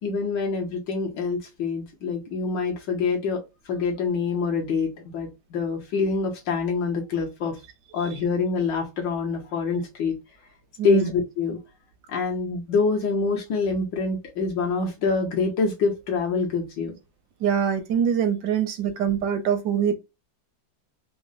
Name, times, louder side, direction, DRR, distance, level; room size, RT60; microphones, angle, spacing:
voice 1, 0.0-3.4 3.7-7.6 7.9-10.2 10.8-11.6 12.1-17.0, left 4 dB, 70° left, 1.5 m, -26 dB
voice 2, 10.8-11.1 17.4-19.9, right 8 dB, 70° right, 1.0 m, -24 dB
3.9 x 2.1 x 2.5 m
omnidirectional pair, 2.2 m